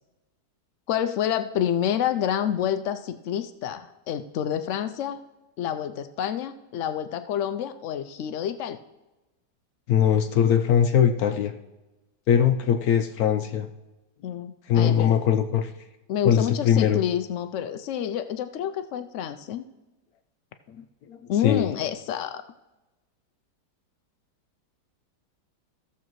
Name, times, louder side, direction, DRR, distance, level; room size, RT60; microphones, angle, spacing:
voice 1, 0.9-5.2 5.6-8.8 14.2-15.1 16.1-19.6 21.3-22.4, left 9 dB, 85° left, 9 dB, 0.6 m, -28 dB
voice 2, 9.9-11.5 12.3-13.7 14.7-15.7 16.2-17.0 21.1-21.7, left 9 dB, 65° left, 7 dB, 1.0 m, -21 dB
16.0 x 7.0 x 3.1 m, 1.1 s
omnidirectional pair, 1.9 m